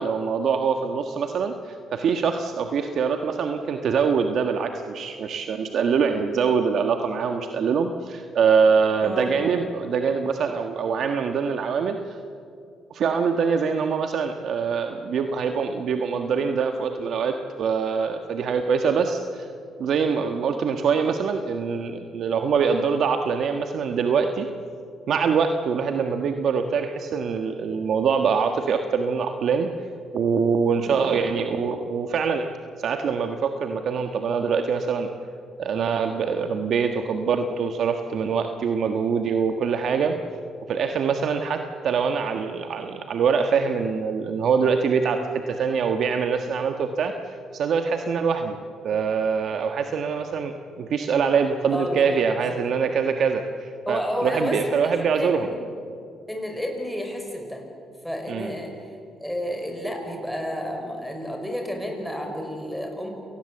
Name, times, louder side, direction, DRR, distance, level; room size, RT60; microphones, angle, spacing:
voice 1, 0.0-12.2 12.9-19.5 19.8-24.5 25.1-29.7 30.1-32.5 32.8-35.1 35.6-40.1 40.7-47.1 47.5-48.6 48.8-55.5 58.3-58.5, right 6 dB, 65° right, 5 dB, 1.4 m, -24 dB
voice 2, 9.0-9.4 30.8-31.1 51.7-52.2 53.9-55.5 56.3-57.6 58.0-58.7 59.2-63.1, equal, ahead, 2 dB, 5.9 m, -31 dB
28.0 x 19.5 x 7.9 m, 2.5 s
cardioid pair, 90°, 0 cm